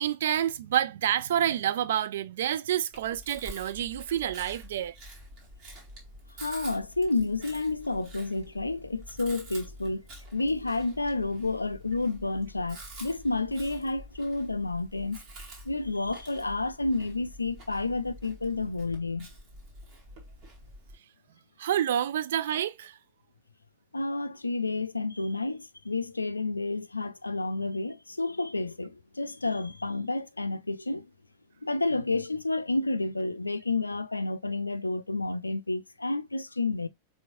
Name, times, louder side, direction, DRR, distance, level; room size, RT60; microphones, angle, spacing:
voice 1, 0.0-5.0 21.6-23.0, right 10 dB, 60° right, 0.3 m, -28 dB
Chewing mastication, 2.9-21.0, right 1 dB, 45° right, 1.9 m, -47 dB
voice 2, 6.4-10.1 10.3-15.2 15.6-19.3 23.9-31.1 31.6-36.9, left 3 dB, 80° left, 0.4 m, -30 dB
4.5 x 3.4 x 2.5 m
figure-of-eight pair, 90°, 0 cm